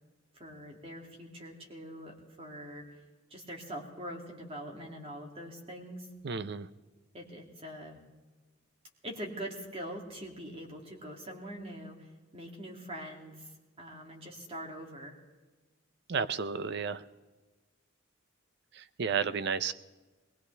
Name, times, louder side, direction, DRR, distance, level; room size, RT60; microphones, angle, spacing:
voice 1, 0.3-3.0 3.3-6.1 7.1-8.0 9.0-12.1 12.3-13.5 13.8-15.1, equal, 30° right, 0 dB, 2.5 m, -43 dB
voice 2, 6.2-6.7 16.1-17.0 18.7-19.7, right 6 dB, 55° right, 14 dB, 0.6 m, -32 dB
21.0 x 19.5 x 3.4 m, 1.3 s
head